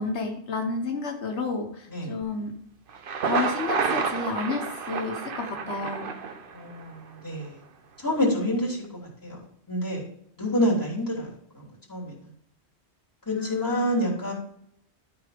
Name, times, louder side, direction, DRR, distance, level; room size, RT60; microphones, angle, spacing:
voice 1, 0.0-2.5 3.2-6.1 13.3-13.9, left 4 dB, 85° left, 3 dB, 1.4 m, -31 dB
Thunder, 2.9-6.9, right 5 dB, 55° right, 0.9 m, -29 dB
voice 2, 6.5-7.6 8.0-8.8 9.2-9.4 9.7-10.0 10.4-11.3 11.5-12.1 13.3-14.3, equal, 15° left, -5 dB, 3.1 m, -27 dB
12.5 x 4.6 x 5.0 m, 0.73 s
omnidirectional pair, 1.1 m